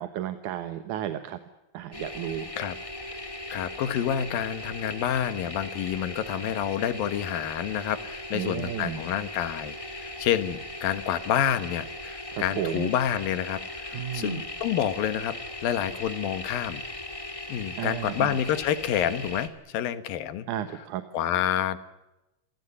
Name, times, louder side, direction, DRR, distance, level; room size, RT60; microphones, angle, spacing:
voice 1, 0.0-1.4 1.7-2.5 8.3-9.0 12.3-12.9 13.9-14.4 17.8-18.4 20.5-21.0, right 11 dB, 65° right, 9 dB, 2.4 m, -33 dB
sound 1, 1.9-19.5, left 1 dB, 15° left, 1.1 m, -38 dB
voice 2, 3.5-15.4 15.6-16.8 17.5-20.5 21.1-21.8, left 10 dB, 80° left, 13 dB, 3.1 m, -28 dB
27.5 x 16.5 x 9.8 m, 0.97 s
omnidirectional pair, 4.1 m